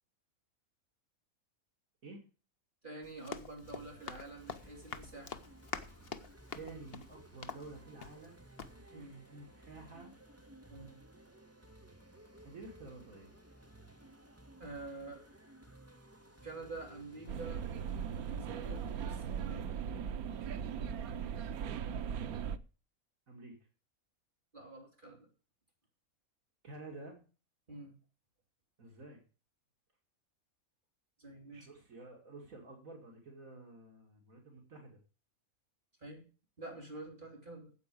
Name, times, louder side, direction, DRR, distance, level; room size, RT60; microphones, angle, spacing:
voice 1, 2.8-5.4 8.9-9.2 10.7-11.0 14.6-15.3 16.4-17.6 18.1-19.8 24.5-25.3 27.7-27.9 31.2-31.7 36.0-36.2 36.6-37.7, right 2 dB, 35° right, 0 dB, 3.8 m, -47 dB
Run, 3.0-8.3 8.6-8.7, left 6 dB, 45° left, 1.0 m, -46 dB
sound 1, 3.6-19.6, right 1 dB, 10° right, 1.6 m, -57 dB
voice 2, 6.5-8.4 8.7-10.1 12.4-13.3 23.3-23.6 26.6-27.2 28.8-29.2 31.5-35.0, right 3 dB, 70° right, 1 dB, 2.8 m, -51 dB
sound 2, 17.3-22.6, right 7 dB, 85° right, 1.2 m, -38 dB
9.5 x 7.9 x 8.4 m, 0.36 s
omnidirectional pair, 1.5 m